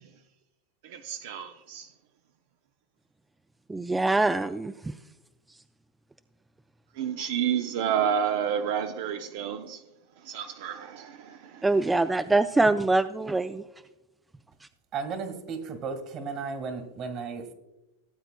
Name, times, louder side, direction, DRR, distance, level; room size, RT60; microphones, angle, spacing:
voice 1, 0.8-1.9 7.0-9.8 10.2-11.7, right 8 dB, 65° right, 0.6 m, -30 dB
voice 2, 3.7-4.9 11.6-13.6, right 2 dB, 10° right, 0.3 m, -24 dB
voice 3, 14.9-17.5, right 5 dB, 40° right, 1.7 m, -34 dB
16.5 x 8.0 x 2.2 m
hypercardioid pair, 115°, 0 cm